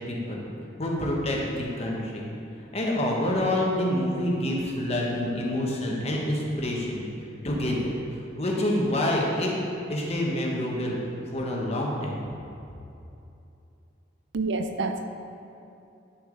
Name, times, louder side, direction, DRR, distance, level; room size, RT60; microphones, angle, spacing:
voice 1, 0.1-0.4 0.8-2.2 2.7-7.0 7.4-7.9 8.4-9.5 9.9-11.0 11.3-12.2, left 1 dB, 35° left, -2 dB, 1.2 m, -27 dB
voice 2, 14.3-15.1, right 3 dB, 70° right, 7 dB, 0.5 m, -28 dB
9.6 x 6.2 x 3.9 m, 2.7 s
head